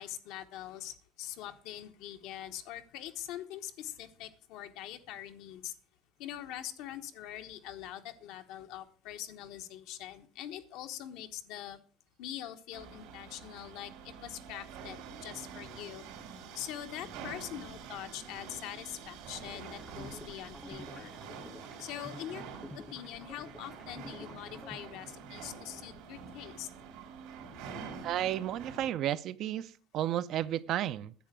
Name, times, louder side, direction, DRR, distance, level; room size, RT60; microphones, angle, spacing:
voice 1, 0.0-5.7 6.2-11.8 12.2-16.0 16.3-21.1 21.8-22.4 22.7-26.7, left 11 dB, 75° left, 1.2 m, -43 dB
sound 1, 12.7-28.9, right 6 dB, 85° right, 3.0 m, -47 dB
sound 2, 19.5-25.5, left 1 dB, 5° left, 0.6 m, -50 dB
voice 2, 28.0-31.1, right 12 dB, 50° right, 0.5 m, -32 dB
10.5 x 7.6 x 6.1 m
cardioid pair, 145°, 0 cm